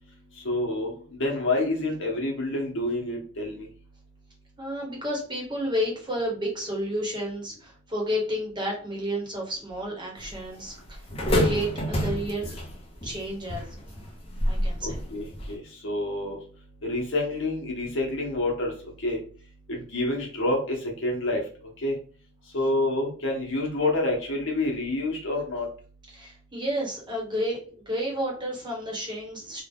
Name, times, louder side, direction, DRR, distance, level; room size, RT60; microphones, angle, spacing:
voice 1, 0.4-3.7 14.8-16.4 16.8-18.7 19.0-19.2 19.7-21.4 21.8-22.0 22.5-25.7, left 2 dB, 65° left, 0 dB, 1.1 m, -28 dB
voice 2, 4.6-11.1 11.3-12.6 13.0-13.7 14.4-15.0 26.1-29.6, equal, 20° right, -2 dB, 1.1 m, -31 dB
sound 1, 10.2-15.6, equal, 30° left, 0.8 m, -29 dB
3.2 x 2.4 x 3.5 m, 0.42 s
head